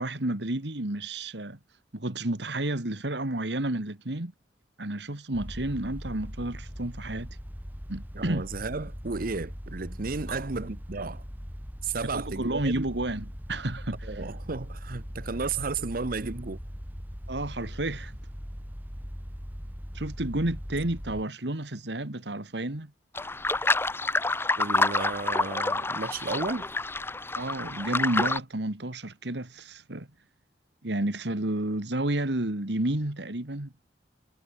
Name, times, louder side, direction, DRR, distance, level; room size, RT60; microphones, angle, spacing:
voice 1, 0.0-1.6 1.9-4.3 4.8-7.3 7.9-8.5 10.3-10.5 12.1-14.2 17.3-18.2 19.9-22.9 27.3-30.1 30.8-33.7, right 1 dB, 70° right, 2.2 m, -31 dB
sound 1, 5.3-21.2, equal, 10° right, 6.0 m, -40 dB
voice 2, 8.1-11.2 11.8-12.9 14.0-16.6 24.6-26.7, right 4 dB, 55° right, 0.9 m, -33 dB
sound 2, 23.1-28.4, left 2 dB, 15° left, 0.9 m, -28 dB
head